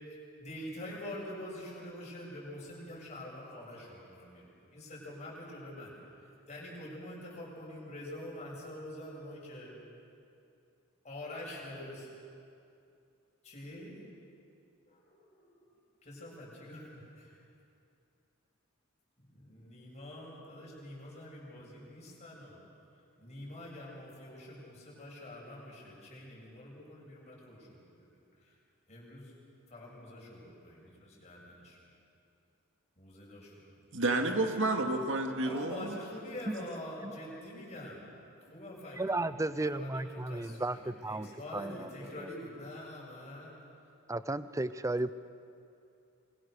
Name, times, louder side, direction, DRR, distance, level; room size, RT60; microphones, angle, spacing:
voice 1, 0.1-9.7 11.0-12.1 13.4-14.0 14.9-15.7 16.0-17.4 19.3-22.6 23.2-28.1 28.4-28.5 28.9-29.3 29.7-31.8 33.0-33.6 35.4-38.0 38.4-39.3 39.7-43.5, left 1 dB, 30° left, -4 dB, 7.7 m, -46 dB
voice 2, 33.9-36.0, right 2 dB, 60° right, 4 dB, 2.3 m, -30 dB
voice 3, 39.0-41.9 42.2-42.3 44.1-45.1, right 2 dB, 15° right, 14 dB, 0.6 m, -34 dB
27.5 x 24.0 x 6.6 m, 2.6 s
head